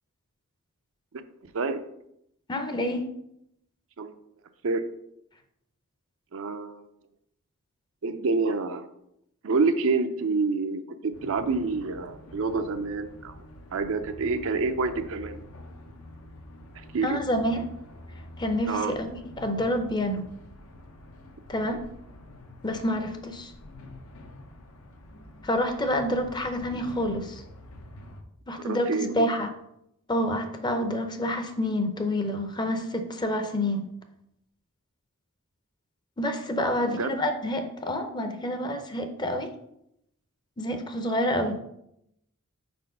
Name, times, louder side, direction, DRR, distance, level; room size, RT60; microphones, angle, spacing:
voice 1, 1.4-1.8 4.0-4.1 4.6-4.8 6.3-6.8 8.0-8.9 9.4-13.4 13.7-15.4 16.9-17.2 18.7-18.9 28.6-29.3 36.6-37.1, right 4 dB, 65° right, 8 dB, 0.5 m, -28 dB
voice 2, 2.5-3.1 17.0-17.6 18.4-19.1 19.4-20.3 21.5-21.8 22.6-23.5 25.4-27.4 28.5-29.5 30.1-33.9 36.2-39.5 40.6-41.6, left 1 dB, 20° left, 7 dB, 0.6 m, -28 dB
sound 1, 11.1-28.2, left 1 dB, 75° left, 0.8 m, -47 dB
4.5 x 4.3 x 5.4 m, 0.77 s
head